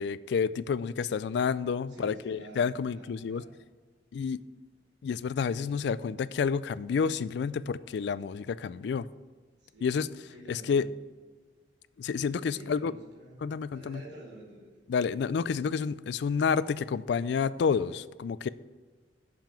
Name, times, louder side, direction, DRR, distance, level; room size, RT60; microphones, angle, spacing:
voice 1, 0.0-3.4 4.1-4.4 5.0-9.1 9.8-10.1 10.5-10.8 12.0-12.9 13.4-14.0 14.9-18.5, left 6 dB, 65° left, 18 dB, 0.3 m, -29 dB
voice 2, 1.8-3.5 9.6-10.8 12.3-14.7, right 1 dB, 80° right, -5 dB, 2.4 m, -50 dB
6.8 x 5.7 x 7.4 m, 1.4 s
head